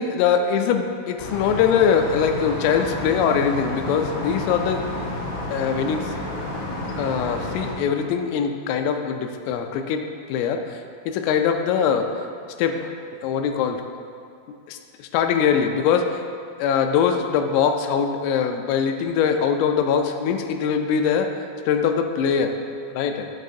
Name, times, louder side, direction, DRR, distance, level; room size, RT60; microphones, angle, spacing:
voice 1, 0.0-4.9 5.5-6.1 7.0-12.1 12.6-12.9 13.2-13.8 14.7-16.2 16.6-21.3 21.7-22.6 22.9-23.3, left 7 dB, 85° left, 5 dB, 3.1 m, -22 dB
sound 1, 1.2-7.7, left 1 dB, 65° left, 3.9 m, -30 dB
13.5 x 7.3 x 2.7 m, 2.4 s
omnidirectional pair, 5.8 m